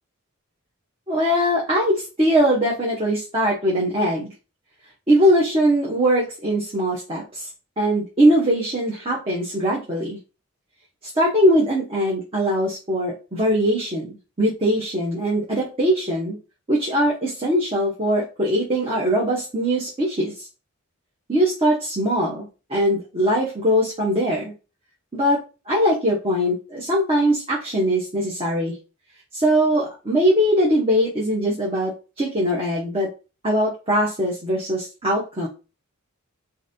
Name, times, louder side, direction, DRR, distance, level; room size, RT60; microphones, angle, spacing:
voice 1, 1.1-4.3 5.1-7.5 7.8-10.2 11.0-16.4 16.7-20.5 21.3-24.5 25.1-28.8 29.3-33.1 33.4-35.5, equal, 25° right, -5 dB, 0.8 m, -21 dB
3.8 x 2.7 x 2.6 m, 0.31 s
head